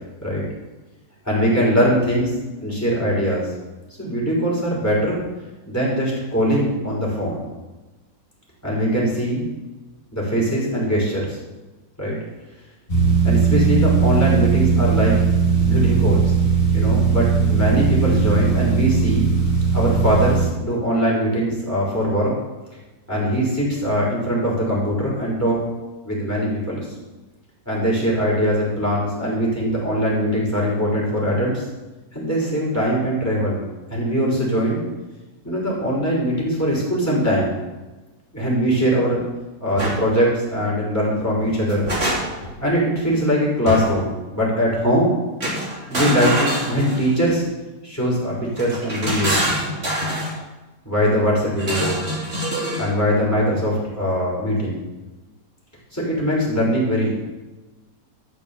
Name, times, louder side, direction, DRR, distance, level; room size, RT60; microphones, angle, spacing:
voice 1, 1.2-2.3 2.6-3.5 4.0-5.2 5.7-7.4 8.6-9.4 10.1-11.4 12.0-12.2 13.2-15.2 15.6-16.3 16.7-19.3 19.7-22.3 23.1-25.6 26.0-26.9 27.7-31.7 32.1-33.6 33.9-34.8 35.4-37.6 38.3-39.2 39.6-41.9 42.6-45.2 45.9-47.4 47.8-49.5 50.8-52.1 52.8-54.8 55.9-57.1, equal, 10° left, -5 dB, 5.3 m, -21 dB
sound 1, 12.9-20.5, right 5 dB, 30° left, 4.9 m, -18 dB
sound 2, 39.8-40.0 41.4-42.5 43.7-44.1 45.4-47.3 48.6-50.4 51.6-52.9, equal, 35° right, 3.2 m, -25 dB
13.0 x 6.9 x 7.2 m, 1.1 s
omnidirectional pair, 1.8 m